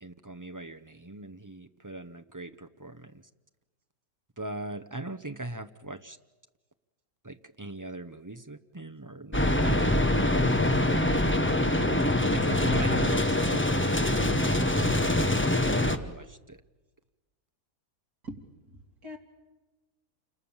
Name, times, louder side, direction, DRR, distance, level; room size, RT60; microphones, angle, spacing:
voice 1, 0.0-3.2 4.4-6.2 7.2-11.0 12.3-13.9 14.1-15.3 15.6-16.6, right 2 dB, 20° right, 6 dB, 0.5 m, -40 dB
sound 1, 9.3-16.0, left 1 dB, 10° left, 1.0 m, -24 dB
voice 2, 18.7-19.2, equal, 75° right, 1 dB, 3.0 m, -42 dB
28.5 x 26.5 x 7.2 m, 1.2 s
omnidirectional pair, 1.6 m